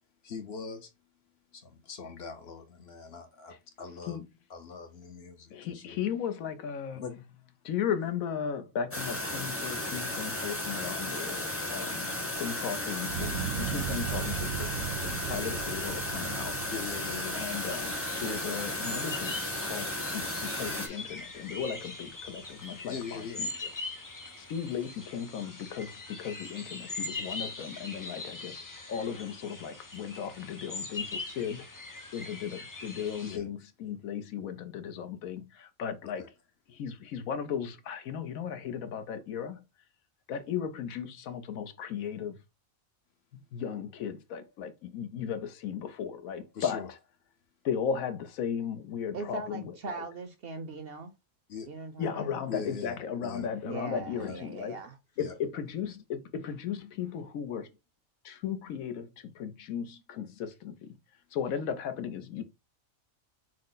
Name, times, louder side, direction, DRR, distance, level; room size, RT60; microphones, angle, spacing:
voice 1, 0.2-0.9 1.5-4.2 4.5-6.0 6.9-7.1 16.7-17.4 22.9-23.5 33.2-33.4 36.2-36.3 46.5-46.9 51.5-51.7 52.5-52.9 53.2-53.5 54.2-54.4 55.2-55.4, left 6 dB, 55° left, 0.9 m, -41 dB
voice 2, 5.5-7.2 7.6-16.6 17.0-23.6 24.4-36.3 36.7-39.6 40.3-42.4 43.3-47.0 47.6-50.0 52.0-54.8 55.2-57.7 58.2-61.0 61.3-62.4, left 7 dB, 80° left, 1.2 m, -36 dB
sound 1, 8.9-20.9, left 1 dB, 15° left, 0.7 m, -34 dB
sound 2, 13.1-19.4 19.8-20.4, right 9 dB, 75° right, 1.1 m, -38 dB
sound 3, 17.4-33.4, left 3 dB, 35° left, 0.3 m, -41 dB
voice 3, 49.1-51.1 51.7-52.3 53.6-55.0, right 3 dB, 55° right, 0.7 m, -40 dB
6.3 x 2.1 x 3.9 m
omnidirectional pair, 1.4 m